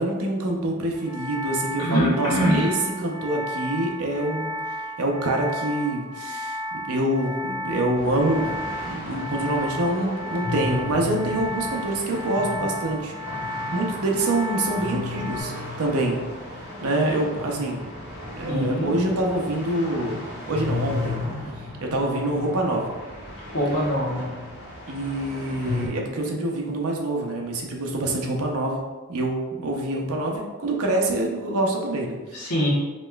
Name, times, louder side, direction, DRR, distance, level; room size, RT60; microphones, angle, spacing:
voice 1, 0.0-4.5 5.0-6.6 6.9-13.1 13.7-15.5 15.8-16.2 16.8-17.8 18.4-20.2 20.5-21.2 21.8-23.0 24.9-28.8 29.1-32.2, right 1 dB, 80° right, 1 dB, 0.7 m, -25 dB
sound 1, 0.9-15.4, left 1 dB, 15° left, 0.8 m, -33 dB
voice 2, 1.8-2.7 18.5-18.9 23.5-24.3 32.3-32.7, equal, 90° left, -5 dB, 1.1 m, -23 dB
sound 2, 7.9-25.9, left 2 dB, 70° left, 1.4 m, -35 dB
5.2 x 2.9 x 2.3 m, 1.3 s
head